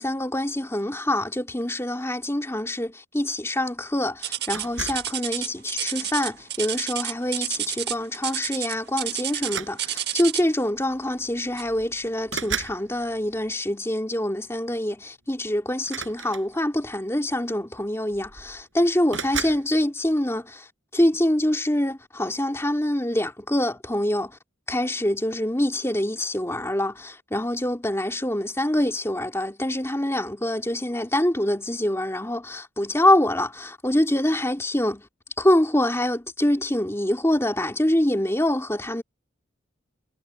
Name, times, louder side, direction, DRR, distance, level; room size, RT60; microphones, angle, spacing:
voice 1, 0.0-20.7 20.9-24.4 24.7-35.1 35.4-39.0, left 1 dB, 15° left, 2.8 m, -25 dB
sound 1, 4.2-10.6 11.6-11.8 12.4-12.5 13.2-13.3, right 11 dB, 55° right, 1.7 m, -30 dB
sound 2, 4.5-5.2 6.0-6.4 7.9-8.0 8.3-8.5 9.4-10.2 11.2-11.3 11.6-12.8 15.8-16.9 17.8-17.9 18.1-18.6 19.1-19.7, right 6 dB, 85° right, 7.9 m, -34 dB
head